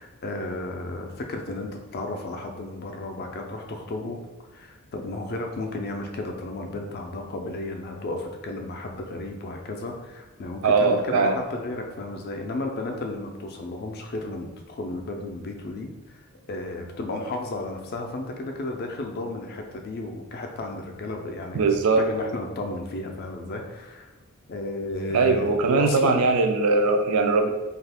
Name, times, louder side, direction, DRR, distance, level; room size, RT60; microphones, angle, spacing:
voice 1, 0.0-4.2 4.5-15.9 16.5-24.1 24.5-26.2, left 2 dB, 45° left, 3 dB, 0.4 m, -33 dB
voice 2, 10.6-11.4 21.5-22.0 25.1-27.5, right 3 dB, 75° right, 6 dB, 0.4 m, -21 dB
2.7 x 2.4 x 3.4 m, 1.2 s
head